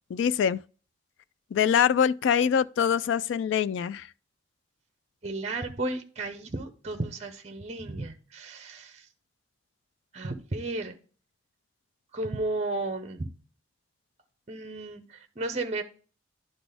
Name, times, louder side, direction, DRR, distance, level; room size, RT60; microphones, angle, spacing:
voice 1, 0.1-0.6 1.5-4.1, left 8 dB, 80° left, 0.3 m, -24 dB
voice 2, 5.2-9.1 10.1-11.0 12.1-13.3 14.5-15.8, right 2 dB, 35° right, 0.7 m, -33 dB
11.0 x 4.1 x 3.4 m
head